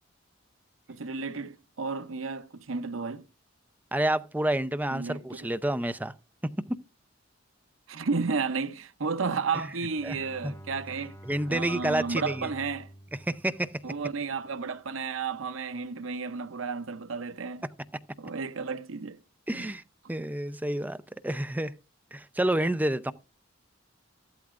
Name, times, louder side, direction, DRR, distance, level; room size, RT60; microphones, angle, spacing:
voice 1, 0.9-3.3 4.9-5.2 7.9-11.2 11.5-12.9 13.8-17.6 18.2-19.2 19.5-19.7, right 4 dB, 85° right, 0.8 m, -32 dB
voice 2, 3.9-6.1 6.7-6.8 9.5-9.7 10.0-10.2 10.4-10.5 11.3-12.5 13.3-13.7 19.5-19.8 20.1-21.0 21.2-21.7 22.1-23.1, right 1 dB, 10° right, 0.5 m, -29 dB
Bowed string instrument, 9.4-14.6, right 1 dB, 15° left, 1.1 m, -49 dB
14.0 x 12.0 x 2.5 m
head